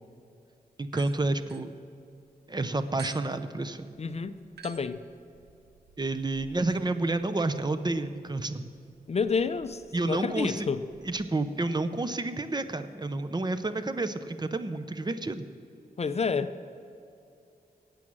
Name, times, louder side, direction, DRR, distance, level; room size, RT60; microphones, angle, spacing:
voice 1, 0.8-1.7 2.5-3.9 6.0-8.7 9.9-10.7 11.1-15.4, right 2 dB, 25° right, 11 dB, 0.6 m, -30 dB
sound 1, 0.9-2.3 3.0-11.3, right 7 dB, 85° right, 0.6 m, -54 dB
voice 2, 4.0-4.4 4.6-5.0 9.1-10.8 16.0-16.5, left 5 dB, 40° left, 11 dB, 0.5 m, -29 dB
12.5 x 8.6 x 6.1 m, 2.7 s
cardioid pair, 75°, 16 cm